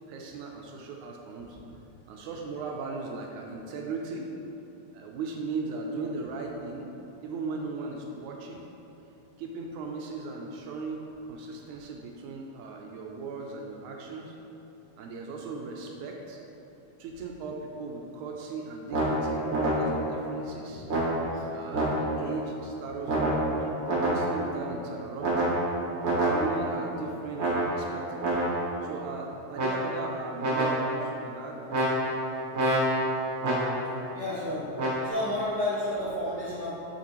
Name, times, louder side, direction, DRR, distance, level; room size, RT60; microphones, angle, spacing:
voice 1, 0.1-1.6 2.1-4.3 4.9-6.9 7.2-8.6 9.4-14.4 15.0-16.4 17.0-20.9 21.5-23.8 24.0-25.6 26.2-28.3 28.8-31.6, right 3 dB, 80° right, 0 dB, 2.0 m, -37 dB
sound 1, 18.9-20.2 20.9-22.4 23.1-24.6 25.2-26.8 27.4-28.8 29.5-30.1 30.4-31.1 31.7-34.0 34.8-35.1, right 1 dB, 50° right, 2.0 m, -27 dB
voice 2, 34.1-34.7 35.0-36.8, left 1 dB, 55° left, -11 dB, 1.2 m, -31 dB
8.4 x 6.0 x 3.0 m, 3.0 s
omnidirectional pair, 3.5 m